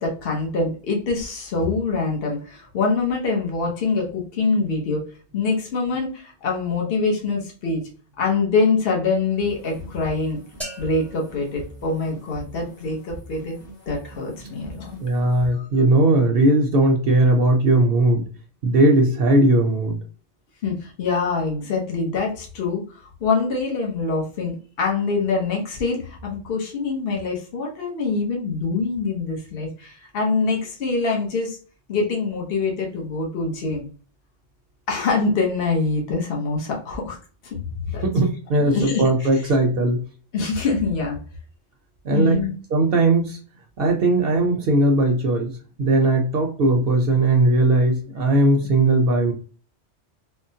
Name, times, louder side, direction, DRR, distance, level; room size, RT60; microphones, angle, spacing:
voice 1, 0.0-5.0 5.3-7.9 8.2-10.4 10.8-13.6 13.9-15.0 15.5-15.7 20.6-31.6 31.9-33.9 34.9-37.2 37.4-37.6 37.9-38.0 38.6-39.4 40.3-41.2 42.1-42.5, left 4 dB, 60° left, 0 dB, 1.0 m, -24 dB
sound 1, 9.4-15.5, right 2 dB, 85° left, 1.9 m, -42 dB
sound 2, 10.6-12.6, right 1 dB, ahead, 0.4 m, -40 dB
voice 2, 15.0-18.2 18.6-20.0 38.0-40.0 42.0-42.4 42.7-43.4 43.8-49.3, right 2 dB, 65° right, 3 dB, 0.7 m, -18 dB
3.7 x 2.0 x 2.7 m, 0.40 s
omnidirectional pair, 1.1 m